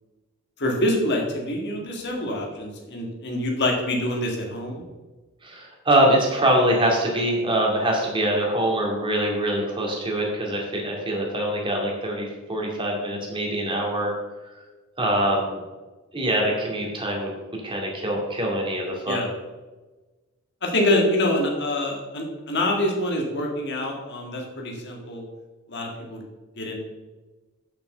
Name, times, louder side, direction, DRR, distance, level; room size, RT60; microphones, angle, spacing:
voice 1, 0.6-4.8 19.1-19.3 20.6-25.2 25.7-26.2 26.6-26.8, left 1 dB, 55° left, 0 dB, 2.0 m, -25 dB
voice 2, 5.4-14.1 15.0-15.6 16.1-17.3 17.6-19.2, right 1 dB, 25° right, -1 dB, 2.3 m, -24 dB
6.9 x 5.9 x 6.7 m, 1.2 s
head